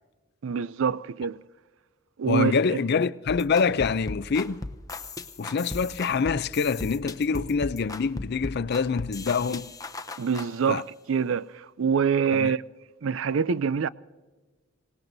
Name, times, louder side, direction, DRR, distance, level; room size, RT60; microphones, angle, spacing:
voice 1, 0.4-1.4 2.2-2.8 10.2-12.6 13.0-13.9, right 6 dB, 70° right, 0.4 m, -25 dB
voice 2, 2.3-4.6 5.4-9.7 10.7-10.8 12.3-12.5, left 5 dB, 50° left, 0.4 m, -25 dB
sound 1, 3.3-10.5, left 2 dB, 15° left, 0.8 m, -37 dB
26.0 x 18.5 x 2.7 m
head